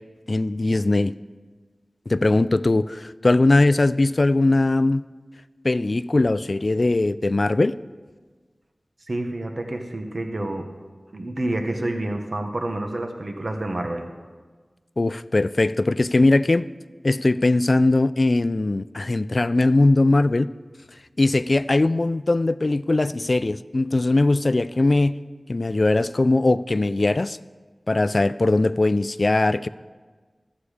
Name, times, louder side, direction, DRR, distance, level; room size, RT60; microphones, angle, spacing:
voice 1, 0.3-1.1 2.1-5.0 5.6-7.7 15.0-16.7 17.0-20.5 21.2-25.1 25.5-27.4 27.9-29.7, left 2 dB, 55° left, 16 dB, 0.3 m, -20 dB
voice 2, 9.1-10.7 11.1-14.1, right 1 dB, 60° right, 4 dB, 1.1 m, -28 dB
13.5 x 8.2 x 4.9 m, 1.4 s
wide cardioid pair, 60°, 0 cm